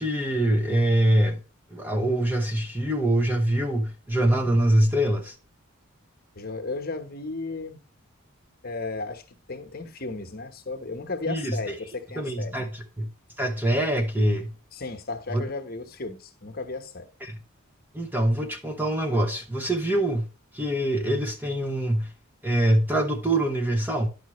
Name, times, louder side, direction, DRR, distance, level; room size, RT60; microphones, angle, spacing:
voice 1, 0.0-1.4 1.7-5.4 11.3-11.6 12.2-13.1 13.4-14.5 15.3-15.5 17.2-17.4 17.9-20.3 20.5-22.1 22.4-24.1, right 1 dB, 10° right, 0.8 m, -24 dB
voice 2, 6.3-7.8 8.6-12.7 14.7-17.1, left 3 dB, 45° left, 1.2 m, -34 dB
10.5 x 6.1 x 3.1 m
head